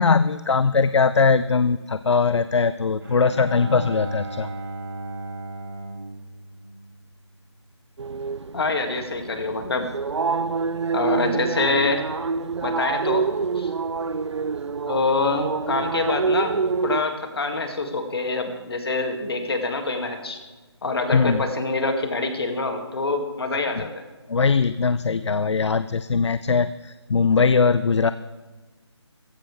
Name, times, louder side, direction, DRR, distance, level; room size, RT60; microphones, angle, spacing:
voice 1, 0.0-4.5 21.1-21.5 24.3-28.1, left 5 dB, 75° left, 14 dB, 0.6 m, -20 dB
Bowed string instrument, 3.0-7.4, right 2 dB, 55° right, 5.0 m, -35 dB
sound 1, 8.0-17.0, right 4 dB, 75° right, 0.5 m, -27 dB
voice 2, 8.5-9.9 10.9-12.0 12.6-13.3 13.6-13.7 14.9-16.6 16.8-20.4 20.8-24.0, left 3 dB, 60° left, 5 dB, 2.3 m, -25 dB
15.5 x 15.5 x 3.4 m, 1.3 s
figure-of-eight pair, 160°, 15 cm